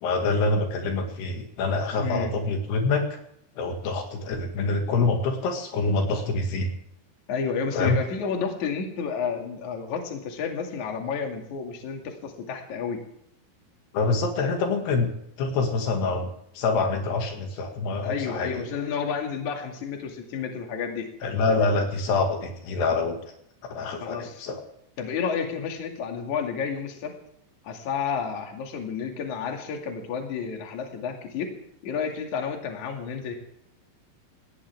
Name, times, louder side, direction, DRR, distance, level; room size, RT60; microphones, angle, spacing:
voice 1, 0.0-3.2 3.6-6.7 7.7-8.0 13.9-15.1 15.4-16.3 16.6-18.7 21.2-23.2 23.7-24.6, left 3 dB, 80° left, 3 dB, 4.2 m, -26 dB
voice 2, 2.0-2.3 7.3-13.0 18.0-21.1 24.0-24.4 25.0-27.1 27.6-31.5 31.8-33.4, left 6 dB, 50° left, 2 dB, 3.5 m, -31 dB
19.5 x 17.0 x 3.6 m, 0.72 s
omnidirectional pair, 4.7 m